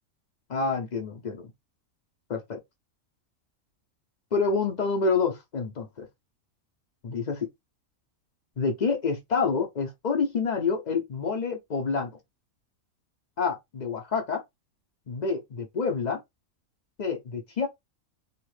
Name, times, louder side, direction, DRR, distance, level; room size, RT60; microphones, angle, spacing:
voice 1, 0.5-1.5 2.3-2.6 4.3-6.1 7.0-7.5 8.6-12.1 13.4-14.4 15.1-16.2 17.0-17.7, left 4 dB, 55° left, 0.5 m, -28 dB
2.9 x 2.4 x 3.1 m
omnidirectional pair, 1.5 m